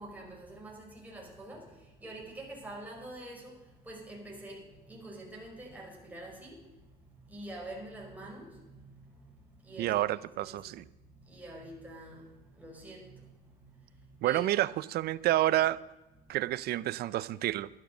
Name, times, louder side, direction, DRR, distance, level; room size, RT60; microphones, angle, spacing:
voice 1, 0.0-1.6 2.0-3.5 3.8-6.6 7.2-9.0 9.6-10.6 11.2-12.2 12.6-13.2 14.2-14.7, right 1 dB, 10° right, 5.0 m, -46 dB
voice 2, 9.8-10.8 14.2-15.8 16.3-17.7, right 15 dB, 70° right, 0.5 m, -29 dB
12.0 x 12.0 x 6.5 m
cardioid pair, 110°, 17 cm